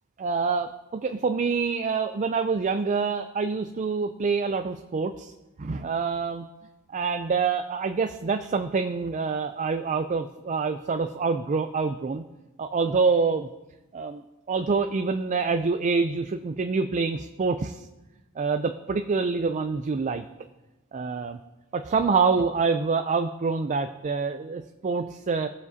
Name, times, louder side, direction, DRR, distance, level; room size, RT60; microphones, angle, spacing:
voice 1, 0.2-5.3 5.6-6.5 6.9-12.2 12.6-13.5 13.9-17.9 18.4-20.3 20.9-21.4 21.7-25.5, right 4 dB, 35° right, 7 dB, 0.4 m, -26 dB
17.5 x 7.3 x 2.7 m, 1.0 s
head